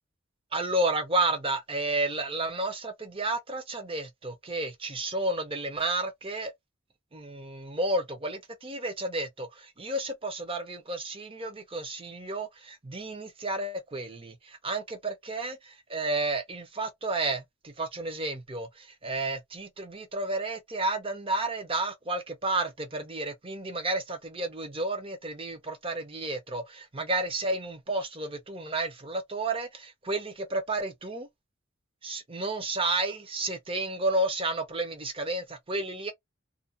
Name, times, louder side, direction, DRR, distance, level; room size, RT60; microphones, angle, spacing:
voice 1, 0.5-6.5 7.1-31.3 32.0-36.1, right 2 dB, 25° right, 0.6 m, -31 dB
2.5 x 2.3 x 2.6 m
head